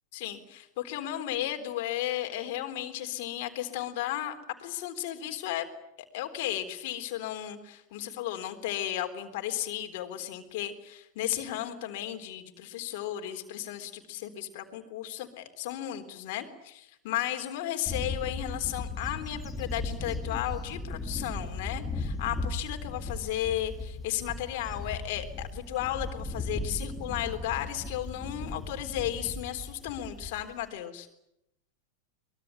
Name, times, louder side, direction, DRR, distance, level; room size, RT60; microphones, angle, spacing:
voice 1, 0.1-5.7 6.1-31.1, left 12 dB, 50° left, 6 dB, 3.8 m, -34 dB
Bird / Wind, 17.9-30.6, left 2 dB, 10° left, 3.4 m, -37 dB
24.0 x 22.0 x 9.9 m, 0.81 s
figure-of-eight pair, 90°, 0 cm